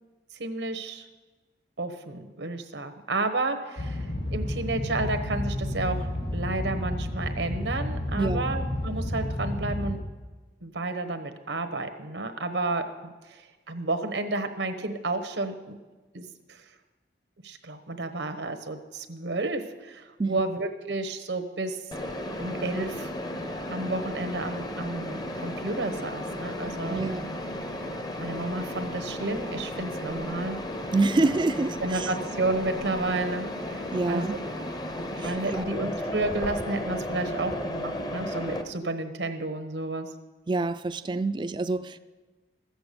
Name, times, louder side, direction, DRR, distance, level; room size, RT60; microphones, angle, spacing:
voice 1, 0.4-1.0 1.8-6.1 6.3-10.0 10.6-15.8 16.1-16.6 17.4-21.8 22.4-23.1 23.7-27.0 28.2-30.6 31.2-31.3 31.8-33.8 34.1-34.4 35.2-40.1, right 2 dB, 90° right, 7 dB, 1.1 m, -31 dB
sound 1, 3.8-10.0, left 1 dB, 70° left, 1.7 m, -31 dB
voice 2, 8.2-8.5 20.2-20.4 26.9-27.3 30.9-32.1 33.9-34.4 35.2-35.7 40.5-42.0, right 3 dB, 25° right, 12 dB, 0.3 m, -27 dB
Mechanisms, 21.9-38.6, left 1 dB, 20° left, 0.7 m, -34 dB
14.5 x 8.0 x 6.8 m, 1.3 s
head